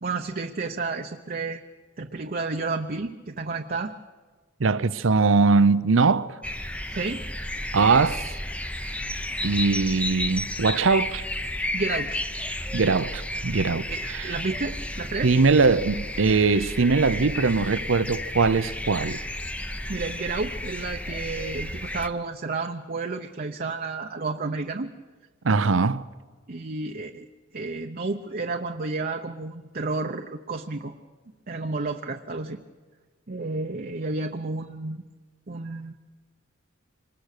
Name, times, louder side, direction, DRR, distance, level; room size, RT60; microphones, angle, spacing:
voice 1, 0.0-1.6 2.0-3.9 6.9-7.2 11.7-12.2 13.9-15.3 19.9-24.9 26.5-27.3 27.5-30.9 31.5-32.6 33.3-35.0 35.5-35.9, right 3 dB, 50° right, 0.8 m, -31 dB
voice 2, 4.6-6.3 7.7-8.3 9.4-11.2 12.7-14.3 15.2-19.2 25.4-26.0, right 4 dB, 90° right, 0.7 m, -21 dB
sound 1, 6.4-22.1, left 1 dB, 5° left, 0.7 m, -32 dB
25.0 x 20.0 x 6.6 m
head